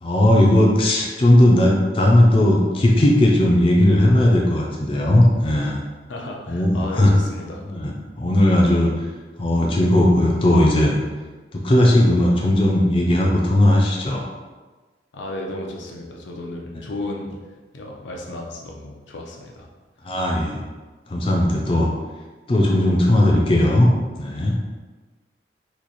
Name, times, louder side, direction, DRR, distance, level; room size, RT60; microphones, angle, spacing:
voice 1, 0.0-5.8 6.5-7.1 7.6-8.9 9.4-11.0 11.5-14.3 20.0-20.6 21.1-21.9 22.5-23.9 24.2-24.6, left 1 dB, 30° left, -2 dB, 0.4 m, -17 dB
voice 2, 6.1-7.7 15.1-17.4 17.7-19.7, left 1 dB, 90° left, -1 dB, 0.6 m, -33 dB
3.0 x 2.4 x 3.9 m, 1.3 s
head